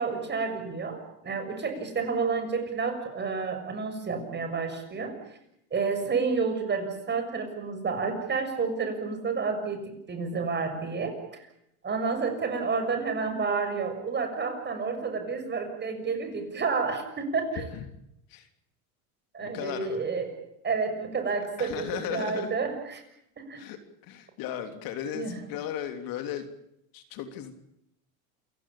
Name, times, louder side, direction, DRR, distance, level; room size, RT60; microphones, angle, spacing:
voice 1, 0.0-5.1 5.7-11.5 11.8-17.6 19.3-20.3 20.6-23.0 23.4-23.6 25.1-25.3, right 4 dB, 25° right, 7 dB, 6.7 m, -30 dB
voice 2, 17.5-17.9 18.3-18.5 19.4-20.0 21.6-22.5 23.6-26.5 26.9-27.5, left 9 dB, 55° left, 8 dB, 3.3 m, -36 dB
28.5 x 16.5 x 8.6 m, 0.78 s
supercardioid pair, 115°, 41 cm